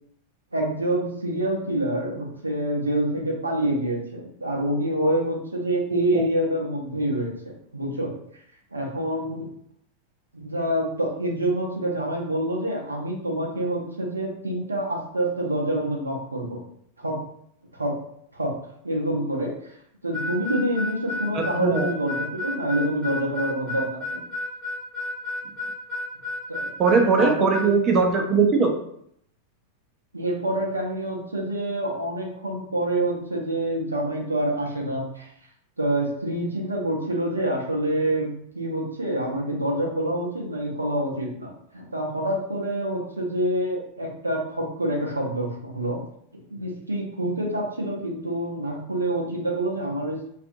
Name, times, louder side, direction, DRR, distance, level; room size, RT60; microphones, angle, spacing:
voice 1, 0.5-8.1 8.7-9.5 10.3-16.6 17.0-17.2 17.7-18.0 18.3-18.6 18.8-19.7 20.0-24.2 26.5-26.7 27.2-27.8 30.1-35.3 35.8-46.0 46.3-50.3, right 1 dB, 80° right, -1 dB, 0.6 m, -27 dB
Harmonica, 20.1-27.7, left 2 dB, 40° left, 1.0 m, -32 dB
voice 2, 21.3-21.9 26.8-28.8, right 4 dB, 30° right, 2 dB, 0.4 m, -20 dB
2.5 x 2.4 x 2.5 m, 0.70 s
figure-of-eight pair, 90°, 0 cm